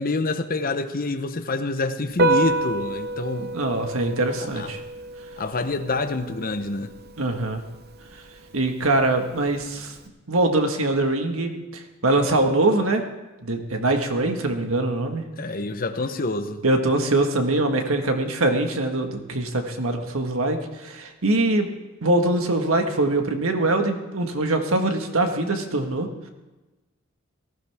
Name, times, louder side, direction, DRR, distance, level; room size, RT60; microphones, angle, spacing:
voice 1, 0.0-3.5 4.4-4.7 5.4-6.9 15.3-16.6, left 3 dB, 45° left, 8 dB, 0.9 m, -27 dB
Piano, 2.1-10.1, right 2 dB, 50° right, 0.9 m, -29 dB
voice 2, 3.5-4.8 7.2-7.6 8.5-9.9 10.3-13.1 13.4-15.2 16.6-21.7 22.0-26.3, right 2 dB, 80° right, 5 dB, 1.7 m, -23 dB
18.5 x 14.5 x 3.6 m, 1.1 s
head